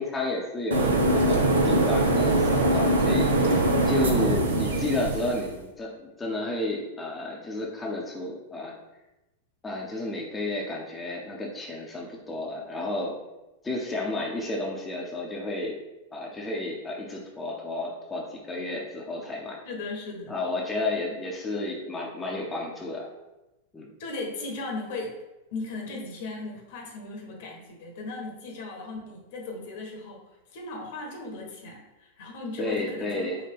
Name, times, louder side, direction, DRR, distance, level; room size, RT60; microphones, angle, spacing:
voice 1, 0.0-8.8 9.6-13.2 13.6-15.8 16.1-19.6 20.3-23.1 23.7-23.9 32.6-33.4, left 2 dB, 15° left, -2 dB, 0.6 m, -32 dB
sound 1, 0.7-5.5, right 1 dB, 70° right, 0.6 m, -22 dB
voice 2, 19.6-20.4 24.0-25.2 25.5-30.2 30.5-33.3, left 3 dB, 50° left, 0 dB, 0.9 m, -36 dB
4.8 x 2.1 x 3.5 m, 1.0 s
figure-of-eight pair, 90°, 0 cm